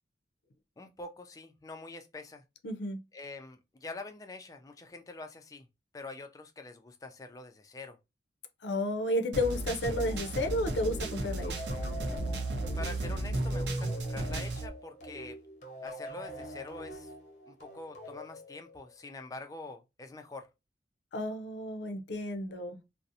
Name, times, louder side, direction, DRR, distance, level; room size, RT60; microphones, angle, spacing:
voice 1, 0.8-2.4 3.1-5.7 5.9-8.0 12.8-15.4 15.8-17.1 17.5-20.5, left 3 dB, 20° left, 0.3 m, -45 dB
voice 2, 2.6-3.0 8.6-11.6 21.1-22.8, left 1 dB, 85° left, 0.5 m, -32 dB
sound 1, 9.3-14.7, right 1 dB, 80° right, 0.6 m, -34 dB
sound 2, 9.9-19.1, equal, 40° left, 0.7 m, -45 dB
2.5 x 2.0 x 2.5 m
head